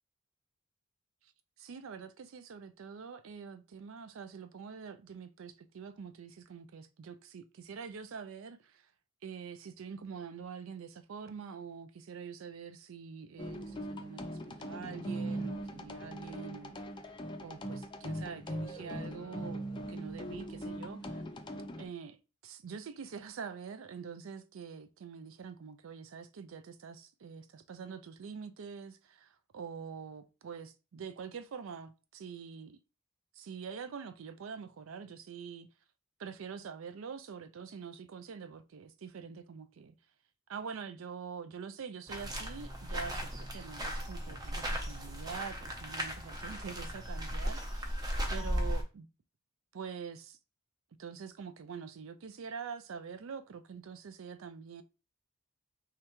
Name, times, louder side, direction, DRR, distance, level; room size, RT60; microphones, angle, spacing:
voice 1, 1.6-8.9 9.2-17.1 17.4-21.2 21.8-22.2 22.4-32.8 33.3-35.7 36.2-40.0 40.5-48.0 48.3-49.1 49.7-50.4 51.0-54.8, right 6 dB, 70° right, 0.4 m, -45 dB
sound 1, 13.4-21.8, right 1 dB, 20° left, 0.4 m, -40 dB
sound 2, 42.1-48.8, equal, 20° right, 0.7 m, -36 dB
3.6 x 3.3 x 3.0 m
head